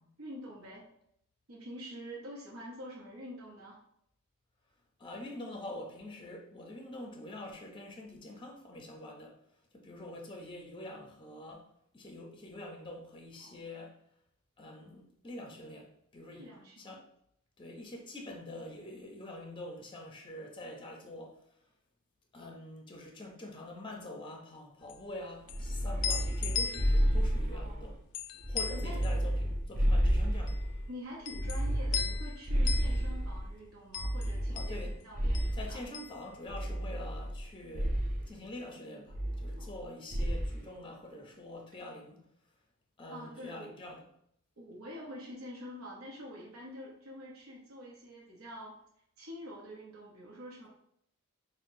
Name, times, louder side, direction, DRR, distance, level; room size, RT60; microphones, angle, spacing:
voice 1, 0.2-0.9 1.5-3.8 13.4-13.7 16.3-17.0 27.5-27.9 28.7-29.0 30.9-35.8 39.6-39.9 43.1-43.7 44.6-48.8 49.2-50.7, equal, 70° right, -4 dB, 0.8 m, -46 dB
voice 2, 5.0-9.3 9.7-11.7 11.9-13.9 14.6-16.5 16.8-17.0 17.6-21.4 22.3-28.0 28.5-30.6 34.5-35.0 35.5-38.0 38.3-42.2 43.0-44.1, left 1 dB, 20° left, 1 dB, 0.6 m, -45 dB
sound 1, 24.8-37.1 37.3-38.4, left 7 dB, 85° left, 0.3 m, -40 dB
sound 2, 25.5-27.9 28.4-30.9 31.3-33.5 34.0-35.8 36.5-37.4 37.7-38.2 39.1-39.8 40.1-40.6, equal, 35° right, 0.4 m, -31 dB
5.7 x 2.1 x 2.6 m, 0.72 s
head